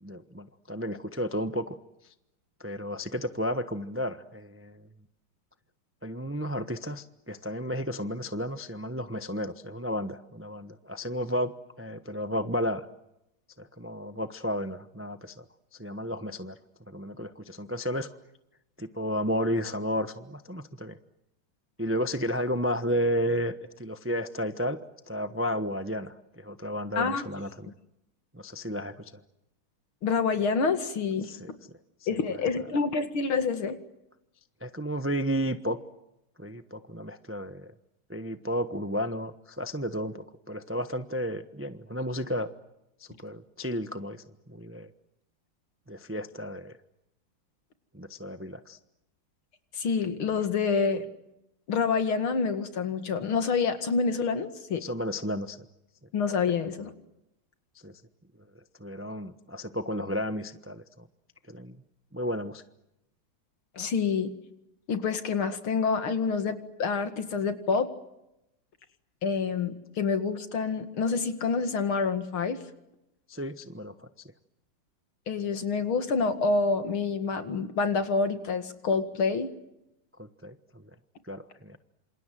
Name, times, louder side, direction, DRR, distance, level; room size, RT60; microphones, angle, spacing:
voice 1, 0.0-1.8 2.6-4.9 6.0-11.5 11.8-12.8 13.6-15.4 15.8-16.6 16.9-18.1 18.8-21.0 21.8-24.8 25.1-27.7 28.3-29.1 31.2-31.5 32.0-32.2 34.6-35.8 36.4-37.7 38.1-42.5 43.0-44.9 45.9-46.7 47.9-48.8 54.8-55.7 57.8-57.9 58.8-61.1 61.5-61.8 62.1-62.6 73.3-74.1 80.2-80.8 81.3-81.8, equal, 15° right, 10 dB, 0.4 m, -32 dB
voice 2, 30.0-31.3 32.1-33.8 49.7-51.0 51.7-54.8 56.1-56.9 63.8-64.3 64.9-67.9 69.2-72.6 75.3-79.5, left 5 dB, 75° left, 8 dB, 2.9 m, -27 dB
27.5 x 27.5 x 7.7 m, 0.88 s
omnidirectional pair, 2.3 m